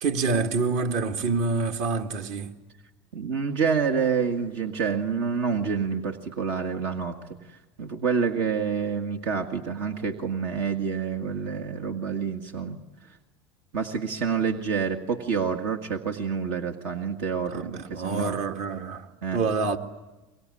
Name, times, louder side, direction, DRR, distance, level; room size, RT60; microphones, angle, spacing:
voice 1, 0.0-2.5 17.5-19.8, right 4 dB, 60° right, 2.3 m, -27 dB
voice 2, 3.1-7.2 7.5-12.8 13.1-13.2 13.7-18.4 19.2-19.4, right 6 dB, 80° right, 1.9 m, -28 dB
24.0 x 23.5 x 9.9 m
supercardioid pair, 90°, 13 cm